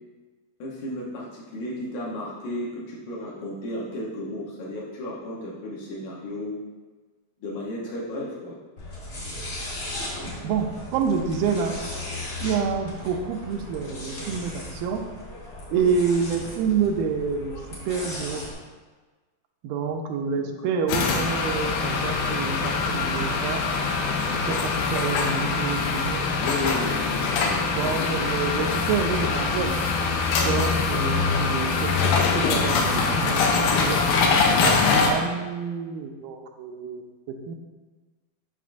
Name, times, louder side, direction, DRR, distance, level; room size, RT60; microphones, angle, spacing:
voice 1, 0.6-6.6 7.4-8.6 15.7-15.9 20.4-20.7 26.4-27.6 30.4-30.6, left 1 dB, 70° left, -5 dB, 2.1 m, -34 dB
sound 1, 8.8-18.5, left 2 dB, 50° left, 1.3 m, -37 dB
voice 2, 10.4-11.8 12.4-15.1 15.7-17.5 17.9-18.4 19.6-23.7 24.4-26.3 27.7-29.8 30.4-34.0 34.6-37.0 37.3-37.5, right 6 dB, 85° right, 4 dB, 2.3 m, -28 dB
sound 2, 20.9-35.1, left 4 dB, 85° left, 2.4 m, -23 dB
7.1 x 5.9 x 2.5 m, 1.3 s
omnidirectional pair, 4.1 m